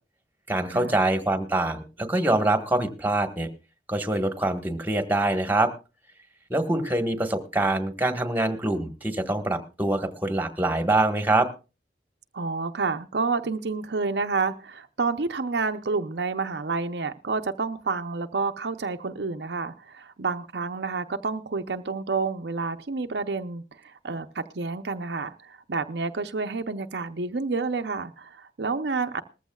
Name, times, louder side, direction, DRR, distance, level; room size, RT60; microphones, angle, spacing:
voice 1, 0.5-3.5 3.9-5.7 6.5-11.5, right 2 dB, 10° right, 8 dB, 1.4 m, -24 dB
voice 2, 12.3-29.2, right 4 dB, 70° right, 7 dB, 0.7 m, -29 dB
20.0 x 14.5 x 2.3 m, 0.30 s
head